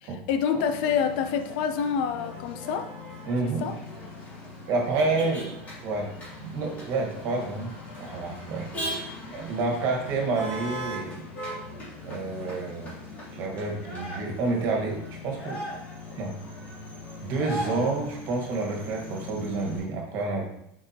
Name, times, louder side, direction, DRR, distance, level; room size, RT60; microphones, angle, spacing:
voice 1, 0.0-2.9 3.4-3.8, left 7 dB, 65° left, 9 dB, 0.6 m, -27 dB
Motor vehicle (road), 0.6-19.8, left 1 dB, 30° left, 2.5 m, -39 dB
voice 2, 3.3-3.7 4.7-5.5 5.8-6.1 6.4-7.7 8.0-8.7 9.3-11.2 12.0-12.9 13.3-15.6 16.2-16.3 17.2-20.4, right 3 dB, 50° right, 1 dB, 1.5 m, -29 dB
7.0 x 4.7 x 2.9 m, 0.76 s
supercardioid pair, 155°, 6 cm